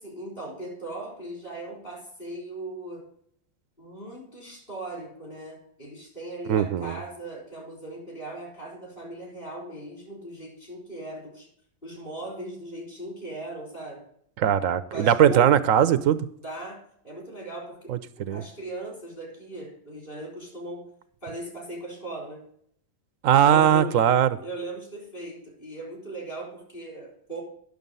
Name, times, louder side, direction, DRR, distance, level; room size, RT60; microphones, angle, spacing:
voice 1, 0.0-3.1 3.8-11.5 11.8-14.1 14.9-15.6 16.4-18.0 18.3-20.9 21.2-22.4 23.5-24.0 24.4-27.4, right 2 dB, 40° left, 0 dB, 4.1 m, -38 dB
voice 2, 6.5-6.9 14.4-16.3 17.9-18.4 23.2-24.4, right 9 dB, 85° right, 14 dB, 1.1 m, -20 dB
10.5 x 6.8 x 5.3 m, 0.67 s
omnidirectional pair, 1.3 m